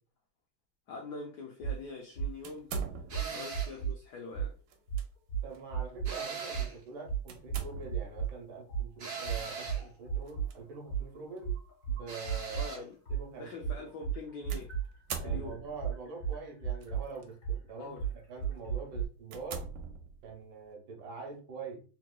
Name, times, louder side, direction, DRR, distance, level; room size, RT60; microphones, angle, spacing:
voice 1, 0.9-2.8 3.2-4.6 12.5-12.9 13.4-14.7 15.2-15.6 17.8-18.0, left 4 dB, 85° left, 0.9 m, -44 dB
sound 1, 1.6-1.8 2.2-2.3 2.7-4.0 4.3-4.5 4.9-6.2 6.5-6.7 7.1-8.3 8.7-12.7 13.1-19.1, right 7 dB, 40° left, 1.8 m, -34 dB
sound 2, 2.4-3.4 4.7-5.1 5.5-5.7 7.3-8.2 10.2-10.6 11.4-11.5 14.5-15.9 16.8-17.3 17.8-18.0 18.6-18.7 19.3-20.5, right 4 dB, 90° right, 1.5 m, -43 dB
sound 3, 3.1-3.8 6.0-6.8 9.0-9.9 12.1-12.9, right 5 dB, 50° right, 1.1 m, -40 dB
voice 2, 3.1-3.5 5.4-11.5 11.9-12.7 13.1-13.5 13.8-13.9 15.2-17.9 18.3-19.7 20.2-21.8, right 4 dB, 65° right, 1.6 m, -45 dB
3.6 x 3.0 x 2.2 m
omnidirectional pair, 2.4 m